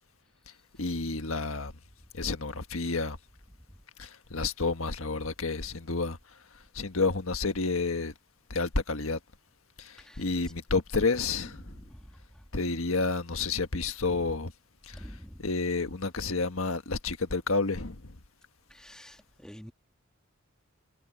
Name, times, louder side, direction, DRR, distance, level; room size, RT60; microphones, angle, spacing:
voice 1, 0.8-1.7 2.1-3.2 4.0-6.2 6.7-8.1 8.5-9.2 9.8-11.6 12.5-14.5 14.9-15.0 15.4-18.1, left 3 dB, 80° left, 1.5 m, -30 dB
voice 2, 11.6-12.0 14.1-14.2 14.9-15.4 18.7-19.7, equal, 5° left, 2.0 m, -47 dB
head